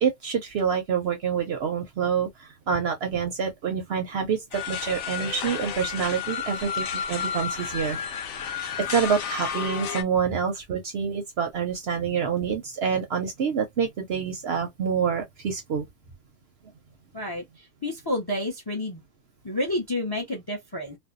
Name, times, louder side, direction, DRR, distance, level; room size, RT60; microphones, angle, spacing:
voice 1, 0.0-8.0 8.5-15.9, right 7 dB, 60° right, 0.7 m, -27 dB
sound 1, 4.5-10.0, left 7 dB, 70° left, 0.8 m, -32 dB
voice 2, 17.8-19.0 19.4-21.0, left 1 dB, 30° left, 0.4 m, -29 dB
2.5 x 2.0 x 2.4 m
omnidirectional pair, 1.4 m